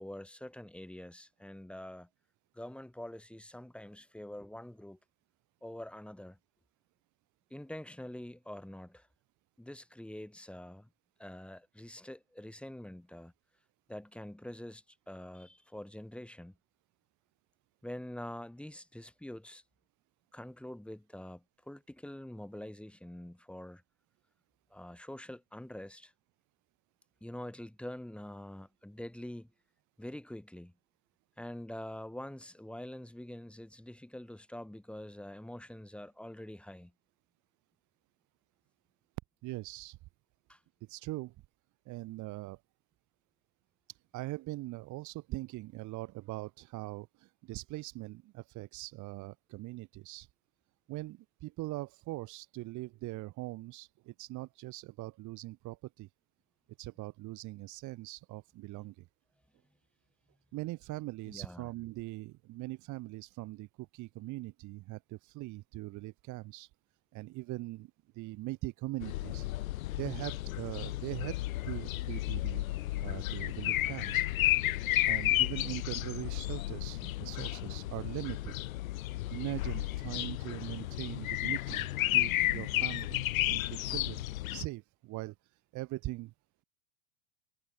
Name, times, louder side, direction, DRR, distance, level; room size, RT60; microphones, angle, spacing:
voice 1, 0.0-2.1 2.5-5.0 5.6-6.4 7.5-9.1 9.6-10.9 11.2-13.3 13.9-16.6 17.8-19.6 20.3-23.8 24.7-26.1 27.2-29.5 30.0-30.7 31.4-36.9 40.5-40.6 61.3-61.7, left 1 dB, 5° left, 3.8 m, -45 dB
voice 2, 39.4-40.0 40.9-41.3 41.9-42.6 44.1-50.3 50.9-56.1 56.8-59.1 60.5-66.7 67.1-69.5 69.9-71.4 71.6-74.3 75.0-78.5 79.3-84.2 84.5-85.3 85.7-86.3, right 19 dB, 45° right, 2.1 m, -41 dB
sound 1, 69.0-84.6, left 16 dB, 70° left, 0.7 m, -32 dB
hypercardioid pair, 85°, 42 cm